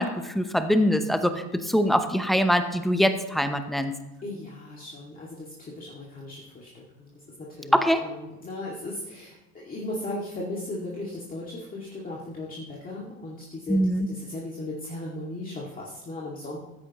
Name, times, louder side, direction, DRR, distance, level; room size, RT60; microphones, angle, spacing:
voice 1, 0.0-3.9 7.7-8.0 13.7-14.1, equal, ahead, 8 dB, 0.8 m, -23 dB
voice 2, 4.2-7.2 7.6-13.8 14.1-16.6, left 2 dB, 20° left, -4 dB, 2.2 m, -37 dB
15.5 x 10.0 x 3.0 m, 1.0 s
hypercardioid pair, 110°, 46 cm